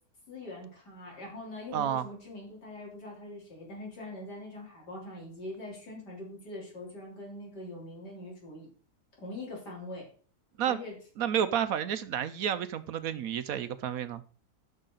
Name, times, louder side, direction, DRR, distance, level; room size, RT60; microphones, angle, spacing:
voice 1, 0.3-8.7 9.2-10.1 10.6-11.0, left 1 dB, 80° left, -2 dB, 4.2 m, -43 dB
voice 2, 1.7-2.1 10.6-10.8 11.2-14.2, right 9 dB, 70° right, 12 dB, 1.0 m, -30 dB
13.0 x 6.5 x 3.9 m, 0.40 s
omnidirectional pair, 1.8 m